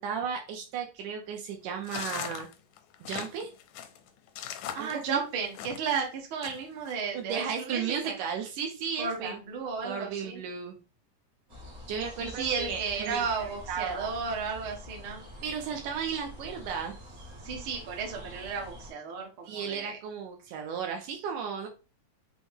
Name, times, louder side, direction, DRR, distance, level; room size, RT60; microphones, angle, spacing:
voice 1, 0.0-2.5 3.0-3.5 4.8-5.2 7.1-9.4 9.8-10.8 11.9-14.1 15.4-17.0 19.5-21.7, right 7 dB, 75° right, 2 dB, 2.0 m, -35 dB
sound 1, 1.8-6.0 6.4-6.9, left 10 dB, 80° left, 1.7 m, -39 dB
voice 2, 4.7-8.2 9.0-10.4 12.2-15.2 17.4-20.0, right 5 dB, 60° right, 0 dB, 1.3 m, -33 dB
sound 2, 11.5-18.9, left 1 dB, 45° right, 1.0 m, -46 dB
6.1 x 2.1 x 3.5 m, 0.32 s
omnidirectional pair, 3.9 m